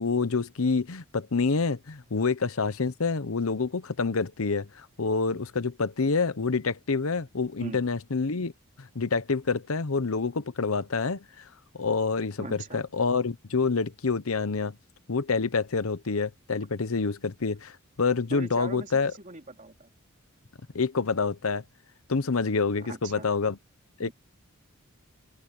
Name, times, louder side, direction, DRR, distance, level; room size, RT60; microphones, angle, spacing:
voice 1, 0.0-8.5 8.8-11.4 11.7-14.8 15.1-19.1 20.7-21.6 22.1-23.6 24.0-24.1, left 4 dB, 75° left, 0.9 m, -27 dB
voice 2, 12.4-12.8 18.3-19.9 22.8-23.2 24.0-24.1, right 2 dB, 35° right, 3.3 m, -41 dB
open air
head